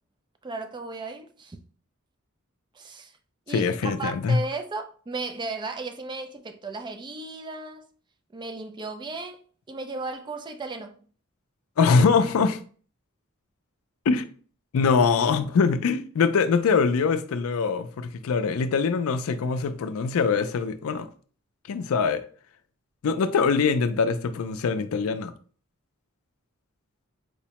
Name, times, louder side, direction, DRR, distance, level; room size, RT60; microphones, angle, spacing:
voice 1, 0.4-1.6 2.7-3.2 3.5-7.9 8.3-9.4 9.7-11.0 23.1-23.3, right 3 dB, 20° right, 0.3 m, -35 dB
voice 2, 3.5-4.4 11.8-12.6 14.1-14.3 14.7-21.1 21.7-22.2 23.0-25.3, left 5 dB, 70° left, 0.4 m, -23 dB
4.5 x 2.1 x 2.8 m
head